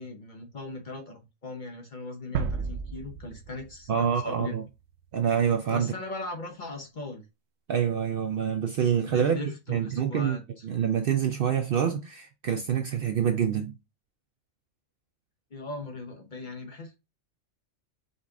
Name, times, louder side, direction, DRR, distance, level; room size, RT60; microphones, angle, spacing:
voice 1, 0.0-4.6 5.7-7.3 9.0-10.6 15.5-17.0, left 2 dB, 45° left, 0.8 m, -39 dB
sound 1, 2.3-5.2, right 5 dB, 85° right, 1.0 m, -34 dB
voice 2, 3.9-4.6 5.1-5.9 7.7-10.4 10.6-13.7, right 8 dB, 60° right, 0.6 m, -26 dB
5.2 x 2.5 x 3.5 m
omnidirectional pair, 1.3 m